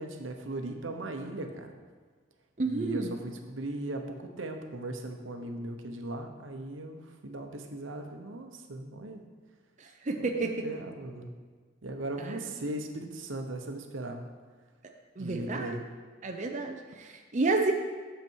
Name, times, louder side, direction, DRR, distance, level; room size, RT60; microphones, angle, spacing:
voice 1, 0.0-1.7 2.6-9.2 10.2-10.3 10.6-11.3 11.8-14.2 15.2-15.8, right 1 dB, 85° right, 5 dB, 0.9 m, -38 dB
voice 2, 2.6-3.2 9.8-10.7 12.2-12.4 15.2-15.8 16.2-17.7, right 3 dB, 40° right, 3 dB, 0.6 m, -30 dB
8.3 x 6.8 x 4.6 m, 1.5 s
head